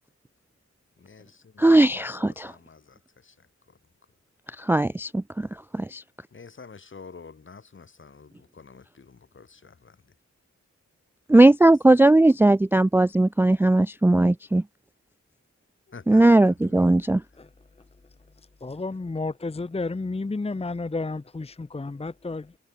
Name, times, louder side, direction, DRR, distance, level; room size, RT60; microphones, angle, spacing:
voice 1, 1.0-3.8 6.3-10.1 15.9-17.0, left 5 dB, 45° left, 2.3 m, -48 dB
voice 2, 1.6-2.5 4.6-6.0 11.3-14.6 16.1-17.2, right 2 dB, 10° right, 0.4 m, -18 dB
voice 3, 18.6-22.6, left 3 dB, 20° left, 1.0 m, -31 dB
wide cardioid pair, 165°, 29 cm